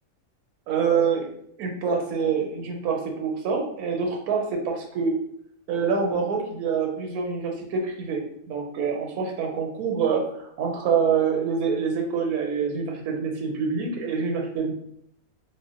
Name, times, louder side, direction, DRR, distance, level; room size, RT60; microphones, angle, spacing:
voice 1, 0.7-1.3 1.6-5.1 5.7-8.2 8.5-10.2 10.6-14.7, right 6 dB, 90° right, 1 dB, 1.1 m, -26 dB
3.4 x 2.2 x 2.4 m, 0.68 s
omnidirectional pair, 1.6 m